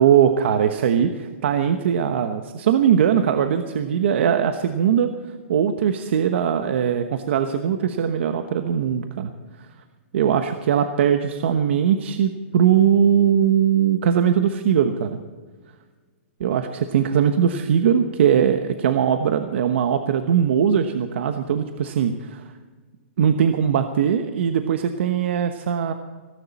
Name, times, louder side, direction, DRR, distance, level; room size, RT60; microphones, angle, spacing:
voice 1, 0.0-5.1 5.5-9.3 10.1-15.2 16.4-22.4 23.2-25.9, right 8 dB, 60° right, 7 dB, 1.1 m, -20 dB
17.5 x 17.5 x 4.2 m, 1.4 s
hypercardioid pair, 165°, 7 cm